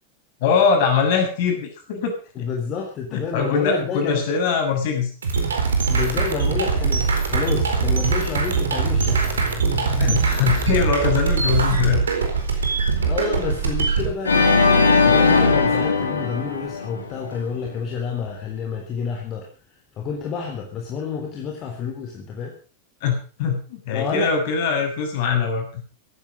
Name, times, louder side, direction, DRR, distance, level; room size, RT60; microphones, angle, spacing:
voice 1, 0.4-2.4 3.1-5.1 10.0-12.0 13.0-13.1 23.0-23.1 23.4-25.8, left 6 dB, 50° left, 4 dB, 6.9 m, -22 dB
voice 2, 2.4-4.2 5.9-9.4 12.7-14.5 14.7-19.5 20.0-22.6 23.9-24.3, left 6 dB, 30° left, 1 dB, 3.7 m, -29 dB
sound 1, 5.2-14.1, right 5 dB, 70° right, 4.3 m, -22 dB
sound 2, 6.0-16.2 16.7-17.9, left 2 dB, 15° left, 5.6 m, -37 dB
Organ, 14.2-17.4, left 4 dB, 75° left, 3.3 m, -18 dB
17.0 x 14.5 x 5.3 m, 0.38 s
figure-of-eight pair, 90°, 0 cm